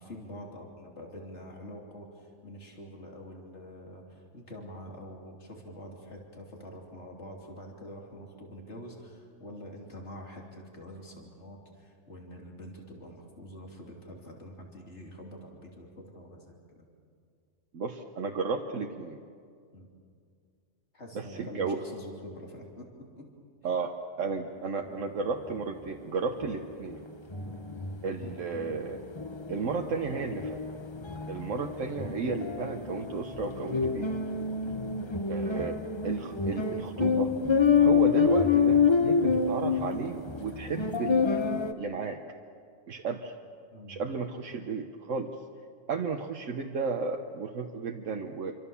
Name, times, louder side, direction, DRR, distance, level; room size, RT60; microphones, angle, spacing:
voice 1, 0.0-16.9 19.7-19.9 20.9-23.3 24.3-24.4 27.4-27.6 31.0-31.3 43.7-44.0, equal, 65° left, 0 dB, 3.5 m, -46 dB
voice 2, 17.7-19.2 21.1-21.8 23.6-27.0 28.0-29.0 29.5-30.6 31.3-34.1 35.3-35.8 36.0-37.3 37.8-41.3 41.7-42.2 42.9-43.3 43.9-45.3 45.9-48.6, right 4 dB, 85° right, 2 dB, 1.5 m, -33 dB
sound 1, 26.4-26.5 26.9-27.0 27.3-41.7, left 5 dB, 25° left, 1.0 m, -27 dB
27.0 x 25.0 x 7.1 m, 2.2 s
omnidirectional pair, 1.3 m